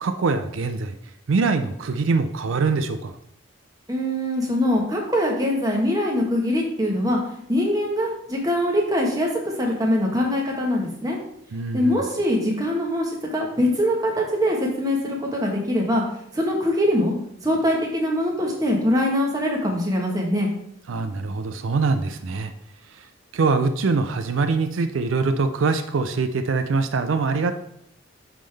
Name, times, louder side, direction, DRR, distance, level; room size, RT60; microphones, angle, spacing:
voice 1, 0.0-1.0 1.3-3.2 11.5-12.0 20.9-22.5 22.9-23.1 23.3-27.5, right 4 dB, 75° right, 9 dB, 0.4 m, -23 dB
voice 2, 3.9-9.3 9.6-11.2 11.7-16.0 16.3-17.1 17.4-20.5, left 1 dB, 15° right, -1 dB, 1.2 m, -23 dB
10.5 x 3.7 x 3.4 m, 0.73 s
head